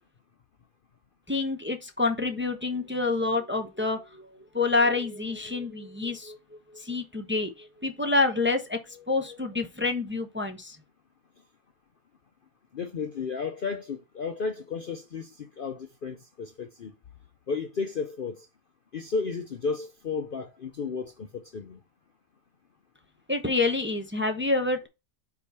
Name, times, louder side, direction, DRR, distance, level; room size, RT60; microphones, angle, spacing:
voice 1, 1.3-4.3 4.5-10.8 23.3-24.9, left 3 dB, 10° right, 0.6 m, -28 dB
voice 2, 12.7-16.9 17.5-18.5 18.9-21.8, left 5 dB, 80° left, 0.4 m, -33 dB
4.9 x 4.7 x 5.5 m
omnidirectional pair, 1.8 m